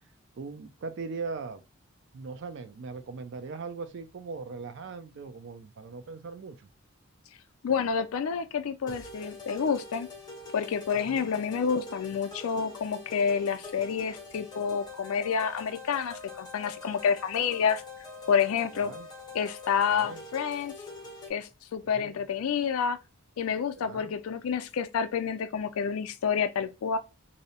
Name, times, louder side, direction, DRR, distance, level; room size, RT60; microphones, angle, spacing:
voice 1, 0.4-1.6 2.1-6.7 11.0-11.4 18.7-19.1 19.9-20.2 21.9-22.2 23.8-24.1, right 4 dB, 55° right, 0.3 m, -40 dB
voice 2, 7.6-10.1 10.5-17.8 18.3-18.9 19.3-20.7 21.3-23.0 23.4-27.0, left 6 dB, 75° left, 0.4 m, -29 dB
sound 1, 8.9-21.3, left 2 dB, 20° left, 0.5 m, -44 dB
2.7 x 2.0 x 2.7 m
head